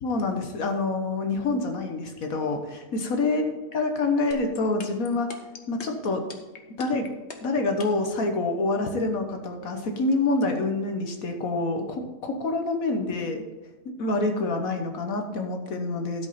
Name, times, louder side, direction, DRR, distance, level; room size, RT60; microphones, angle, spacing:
voice 1, 0.0-5.3 5.7-6.3 6.7-7.1 7.4-13.4 13.8-16.3, left 3 dB, 65° left, 4 dB, 1.5 m, -27 dB
sound 1, 4.3-8.1, left 5 dB, 50° left, 1.3 m, -40 dB
12.5 x 5.3 x 5.7 m, 1.2 s
omnidirectional pair, 1.6 m